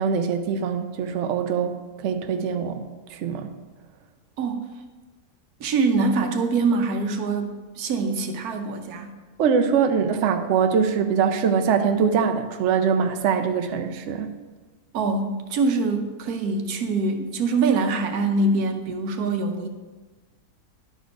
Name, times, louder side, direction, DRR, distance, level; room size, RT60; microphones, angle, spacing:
voice 1, 0.0-1.8 2.0-2.8 3.1-3.5 9.4-14.3, right 6 dB, 65° right, 7 dB, 0.8 m, -23 dB
voice 2, 4.4-4.7 5.6-9.2 14.9-19.7, right 3 dB, 80° right, 5 dB, 1.3 m, -24 dB
11.0 x 4.5 x 4.6 m, 1.3 s
omnidirectional pair, 1.6 m